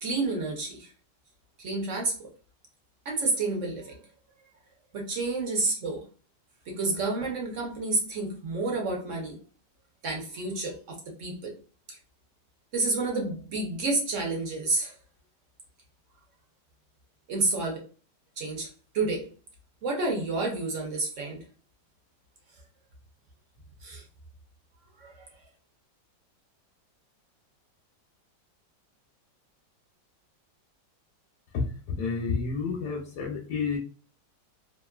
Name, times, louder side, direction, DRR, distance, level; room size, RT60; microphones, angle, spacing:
voice 1, 0.0-0.9 1.6-2.3 3.0-4.0 4.9-6.0 6.7-9.4 10.0-11.5 12.7-15.0 17.3-17.8 18.4-18.7 18.9-19.3 19.8-21.4 23.8-24.0 25.0-25.3, right 3 dB, 60° right, -1 dB, 0.8 m, -30 dB
voice 2, 31.5-33.8, left 4 dB, 70° left, 0 dB, 1.0 m, -30 dB
2.9 x 2.4 x 2.3 m, 0.38 s
omnidirectional pair, 2.0 m